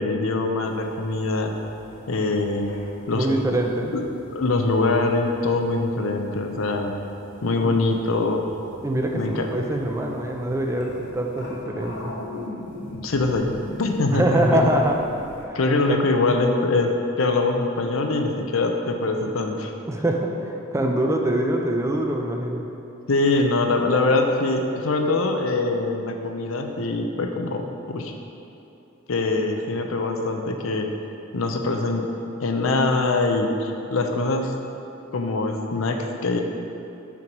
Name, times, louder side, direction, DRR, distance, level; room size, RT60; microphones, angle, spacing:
voice 1, 0.0-1.6 2.1-2.7 3.1-3.3 3.9-4.0 4.3-6.9 7.4-8.4 9.1-9.5 13.0-13.5 13.8-14.7 15.5-16.9 17.2-19.7 23.1-28.1 29.1-30.9 31.3-32.1 32.4-34.6 35.1-36.4, left 3 dB, 80° left, 4 dB, 0.6 m, -23 dB
sound 1, 0.6-15.4, left 1 dB, 60° left, 1.2 m, -42 dB
voice 2, 3.1-3.9 7.6-7.7 8.8-12.1 14.1-15.0 15.5-15.6 15.9-16.0 19.9-22.6, right 1 dB, 15° right, 2 dB, 0.5 m, -24 dB
5.9 x 4.7 x 5.2 m, 2.8 s
head